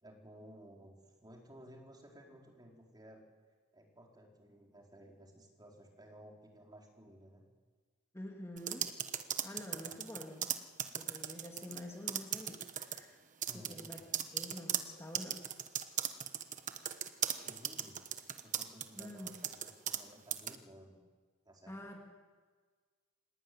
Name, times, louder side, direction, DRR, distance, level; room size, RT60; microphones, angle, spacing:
voice 1, 0.0-3.2 3.7-7.4 9.8-9.9 13.5-14.1 17.4-18.0 18.4-21.0 21.4-21.9, equal, 20° right, 0 dB, 4.4 m, -56 dB
voice 2, 8.1-8.9 9.4-10.5 10.9-13.2 13.5-15.4 18.9-19.3 21.7-22.0, left 1 dB, 15° left, 0 dB, 2.8 m, -47 dB
sound 1, 8.6-11.8 12.1-13.0 13.4-20.0 20.3-20.5, right 9 dB, 40° right, 1.2 m, -37 dB
25.5 x 17.5 x 9.5 m, 1.5 s
head